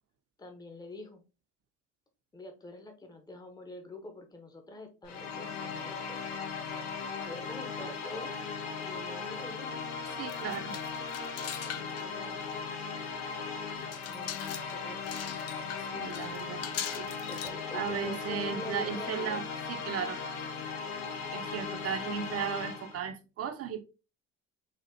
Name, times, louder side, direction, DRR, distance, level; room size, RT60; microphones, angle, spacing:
voice 1, 0.4-1.2 2.3-6.2 7.2-8.3 8.6-9.8 11.4-12.5 14.1-15.1 16.5-16.6 17.3-19.4, left 2 dB, 10° left, 0.8 m, -45 dB
sound 1, 5.0-23.0, left 5 dB, 75° left, 0.8 m, -38 dB
voice 2, 10.2-10.7 15.9-17.1 17.7-19.4 19.7-20.2 21.3-23.8, right 7 dB, 40° right, 0.7 m, -36 dB
sound 2, 10.3-12.1 12.4-12.5 13.1-13.2 13.7-17.5, left 10 dB, 45° left, 0.5 m, -42 dB
4.2 x 2.4 x 2.7 m
hypercardioid pair, 70°, 35 cm